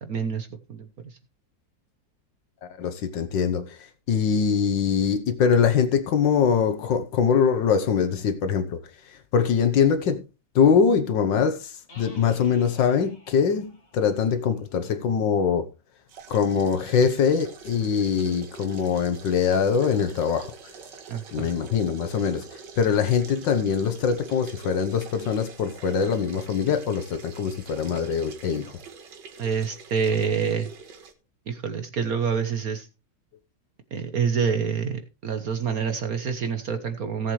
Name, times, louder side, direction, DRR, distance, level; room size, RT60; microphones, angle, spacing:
voice 1, 0.0-1.2 21.1-21.5 29.4-30.7 31.5-32.9 33.9-37.3, right 6 dB, 55° right, 1.4 m, -27 dB
voice 2, 2.6-10.2 10.6-15.7 16.3-20.5 21.3-28.8, left 6 dB, 80° left, 1.8 m, -23 dB
sound 1, 11.9-15.5, left 2 dB, 60° left, 4.8 m, -53 dB
sound 2, 16.1-31.1, right 5 dB, 75° right, 2.1 m, -45 dB
17.5 x 7.4 x 3.2 m
omnidirectional pair, 1.9 m